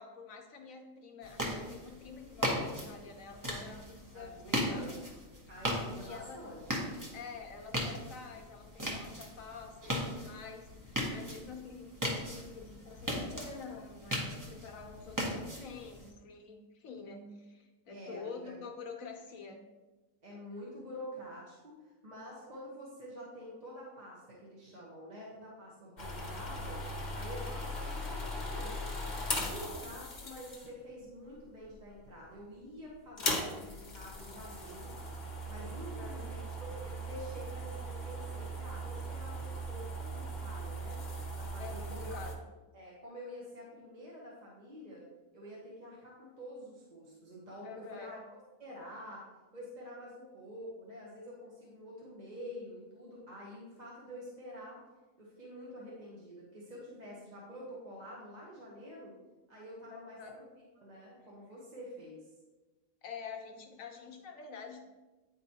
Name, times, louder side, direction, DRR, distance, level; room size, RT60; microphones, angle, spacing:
voice 1, 0.0-5.1 6.0-6.5 7.1-19.6 35.8-36.4 41.6-42.4 47.6-48.2 59.9-60.3 63.0-64.8, left 5 dB, 75° left, 3 dB, 1.3 m, -47 dB
sound 1, 1.2-16.1, equal, 15° right, 0.9 m, -38 dB
voice 2, 4.1-4.9 5.5-6.9 17.9-18.6 20.2-26.8 27.1-29.0 29.3-34.9 35.5-41.0 41.3-42.2 42.7-45.1 45.3-48.2 48.6-49.2 49.5-54.8 55.2-59.1 59.5-60.4 60.8-62.3, equal, 35° right, -5 dB, 1.1 m, -48 dB
sound 2, 26.0-30.9 31.6-32.1 32.4-32.5 33.0-42.3, equal, 35° left, 1.0 m, -39 dB
9.5 x 4.4 x 2.8 m, 1.2 s
omnidirectional pair, 1.4 m